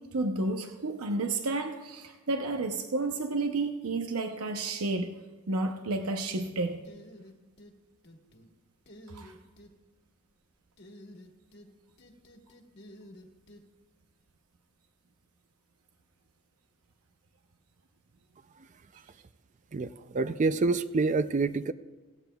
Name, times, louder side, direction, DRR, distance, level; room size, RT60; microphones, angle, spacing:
voice 1, 0.0-5.2 5.5-6.8 9.1-9.3, right 2 dB, 80° right, 5 dB, 0.8 m, -31 dB
sound 1, 6.8-7.7 8.0-8.5 8.9-9.7 10.8-11.7 12.0-13.6, left 1 dB, 50° left, 1.4 m, -50 dB
voice 2, 19.7-21.7, right 3 dB, 35° right, 13 dB, 0.3 m, -27 dB
17.0 x 16.5 x 2.3 m, 1.3 s
head